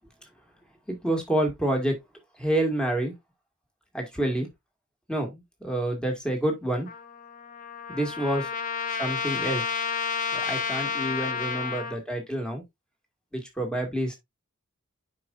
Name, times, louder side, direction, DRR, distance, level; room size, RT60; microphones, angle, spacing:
voice 1, 0.9-1.9 2.4-3.1 3.9-4.5 5.1-6.9 7.9-8.5 9.0-9.6 10.3-12.6 13.3-14.2, right 1 dB, 5° left, 2.1 m, -28 dB
Trumpet, 6.9-12.0, left 6 dB, 40° left, 0.7 m, -31 dB
9.4 x 5.3 x 2.5 m
head